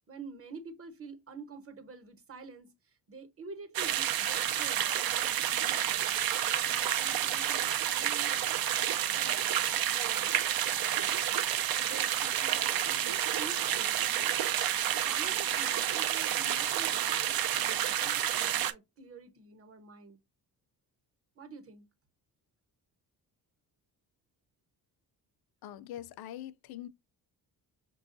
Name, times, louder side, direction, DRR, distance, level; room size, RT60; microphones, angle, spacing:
voice 1, 0.1-5.9 6.3-8.3 8.7-10.3 10.8-11.2 11.7-13.9 14.4-14.5 14.9-20.2 21.4-21.9, right 4 dB, 35° right, 1.0 m, -48 dB
sound 1, 3.7-18.7, right 10 dB, 60° right, 0.5 m, -30 dB
voice 2, 25.6-26.9, left 12 dB, 60° left, 0.5 m, -43 dB
5.9 x 2.3 x 2.5 m
cardioid pair, 95°, 42 cm